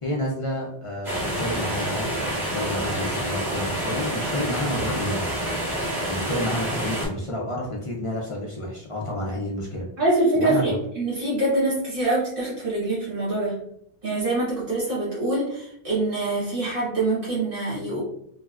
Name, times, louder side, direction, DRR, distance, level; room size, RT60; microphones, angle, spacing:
voice 1, 0.0-2.1 2.4-5.4 5.9-9.8 10.3-10.8, left 1 dB, 45° left, -3 dB, 0.4 m, -30 dB
sound 1, 1.0-7.1, right 1 dB, 45° right, 1.5 m, -28 dB
voice 2, 10.0-13.6 14.0-18.0, right 2 dB, 60° right, -7 dB, 1.3 m, -24 dB
3.2 x 2.1 x 2.3 m, 0.71 s
omnidirectional pair, 1.0 m